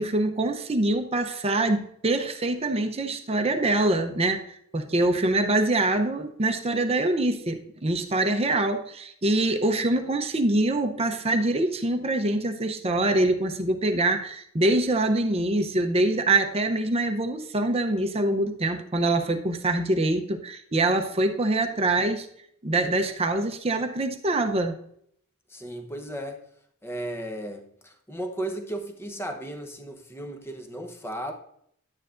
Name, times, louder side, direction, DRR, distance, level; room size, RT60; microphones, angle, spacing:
voice 1, 0.0-22.3 22.6-24.8, right 2 dB, 30° right, 6 dB, 0.7 m, -24 dB
voice 2, 25.5-26.4 26.8-31.3, right 1 dB, 10° left, 5 dB, 0.9 m, -35 dB
10.5 x 9.0 x 2.5 m, 0.70 s
head